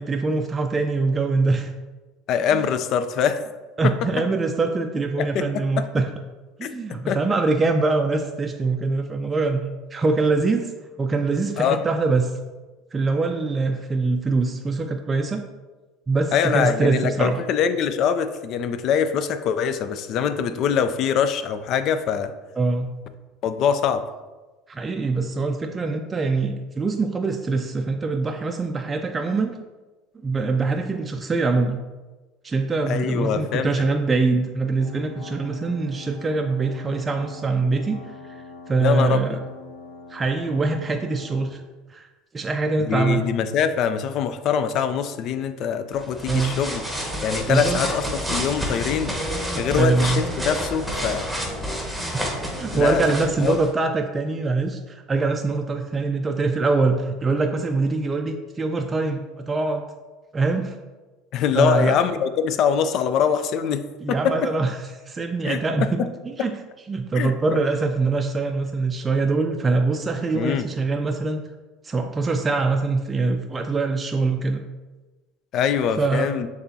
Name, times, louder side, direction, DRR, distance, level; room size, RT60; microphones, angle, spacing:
voice 1, 0.0-1.7 2.5-2.6 3.8-6.1 6.6-10.7 11.0-12.4 12.9-15.4 16.1-17.4 22.6-22.9 24.7-29.5 30.2-31.8 32.4-38.2 38.7-39.4 40.1-41.6 41.9-42.1 42.3-43.2 46.3-46.5 47.5-47.8 49.5-50.2 52.2-59.8 60.3-60.8 61.5-61.9 64.0-64.8 65.1-66.6 66.9-71.4 71.8-74.6 76.0-76.3, right 3 dB, 25° right, 4 dB, 0.3 m, -23 dB
voice 2, 2.3-3.4 4.2-4.3 5.2-5.9 6.6-7.2 11.6-11.8 16.3-22.3 23.4-24.1 32.9-33.7 38.8-39.4 42.8-46.8 47.2-49.1 49.6-51.3 52.7-53.0 53.4-53.6 61.3-64.5 65.4-66.1 66.4-66.5 67.1-67.3 70.3-70.7 75.5-76.5, left 7 dB, 55° left, 11 dB, 0.3 m, -23 dB
sound 1, 34.8-41.5, left 3 dB, 75° left, 0.9 m, -43 dB
sound 2, 45.9-53.7, equal, ahead, 1.0 m, -29 dB
6.6 x 2.4 x 2.7 m, 1.2 s
hypercardioid pair, 90°, 0 cm